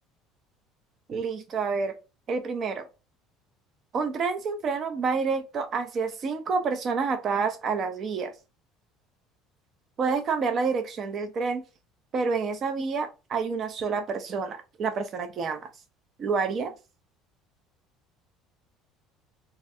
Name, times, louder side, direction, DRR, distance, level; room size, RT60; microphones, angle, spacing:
voice 1, 1.1-2.0 2.3-2.9 3.9-8.3 10.0-11.6 12.1-15.7 16.2-16.7, right 5 dB, 30° right, 0.4 m, -28 dB
3.1 x 2.4 x 2.6 m
cardioid pair, 175°, 0 cm